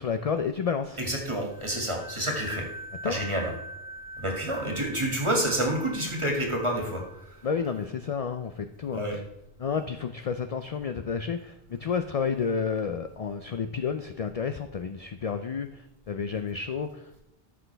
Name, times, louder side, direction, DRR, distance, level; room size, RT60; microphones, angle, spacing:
voice 1, 0.0-1.0 3.0-3.1 7.4-9.2 9.6-17.2, left 6 dB, 50° left, 8 dB, 0.5 m, -31 dB
voice 2, 1.0-2.7 3.0-3.5 4.2-7.4 8.9-9.2, right 1 dB, 30° right, 0 dB, 2.0 m, -29 dB
sound 1, 1.5-8.0, right 1 dB, 5° right, 0.6 m, -44 dB
13.5 x 6.2 x 3.3 m, 0.85 s
omnidirectional pair, 1.0 m